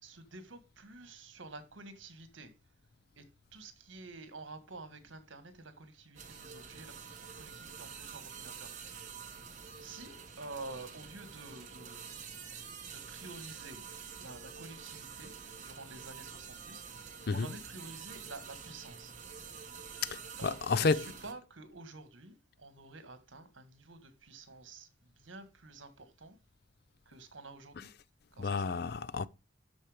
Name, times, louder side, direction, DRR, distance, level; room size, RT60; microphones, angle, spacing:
voice 1, 0.0-2.5 3.2-3.3 3.5-7.1 7.4-9.1 9.8-12.1 12.9-13.8 14.2-16.8 17.1-19.1 20.4-26.4 27.0-27.9 28.3-28.7, right 2 dB, 75° right, 1.6 m, -49 dB
sound 1, 6.2-21.3, right 6 dB, 40° right, 1.4 m, -47 dB
voice 2, 20.0-21.1 28.4-29.3, left 4 dB, 50° left, 0.4 m, -31 dB
12.5 x 4.5 x 4.9 m
head